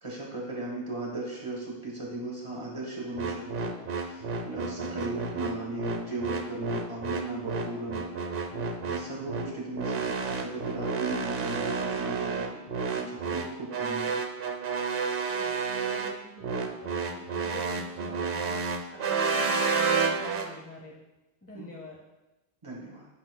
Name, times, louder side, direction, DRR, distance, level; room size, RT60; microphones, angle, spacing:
voice 1, 0.0-8.3 8.8-12.6 12.9-14.2 21.6-21.7 22.6-23.1, right 2 dB, 30° right, -3 dB, 1.2 m, -37 dB
sound 1, 3.2-20.5, right 5 dB, 60° right, 0.9 m, -30 dB
voice 2, 15.3-18.6 18.9-21.0 21.4-22.0, left 1 dB, 15° left, -2 dB, 0.6 m, -46 dB
10.5 x 5.6 x 2.2 m, 1.0 s
omnidirectional pair, 1.1 m